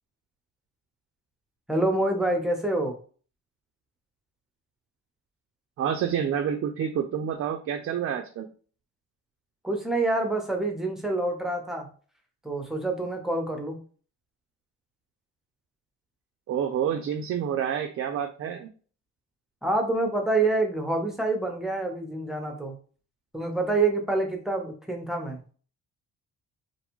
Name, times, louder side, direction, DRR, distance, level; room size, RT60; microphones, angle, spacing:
voice 1, 1.7-3.0 9.6-11.9 12.4-13.8 19.6-22.7 23.3-25.4, right 2 dB, ahead, 2 dB, 0.8 m, -27 dB
voice 2, 5.8-8.5 16.5-18.7, right 8 dB, 50° right, 5 dB, 0.4 m, -28 dB
2.5 x 2.3 x 3.0 m, 0.41 s
cardioid pair, 90°, 30 cm